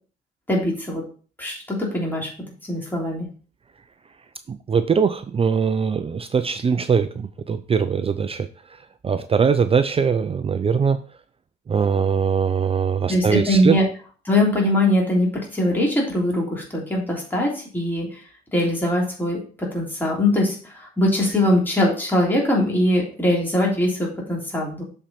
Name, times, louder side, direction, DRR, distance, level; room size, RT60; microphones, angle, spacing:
voice 1, 0.5-1.0 1.4-2.3 2.6-3.3 13.1-13.8 14.2-18.2 18.5-24.8, left 1 dB, 10° left, -3 dB, 3.3 m, -22 dB
voice 2, 4.5-11.0 11.7-13.8, right 6 dB, 30° right, 11 dB, 0.5 m, -21 dB
7.4 x 4.5 x 5.2 m, 0.40 s
supercardioid pair, 80°, 21 cm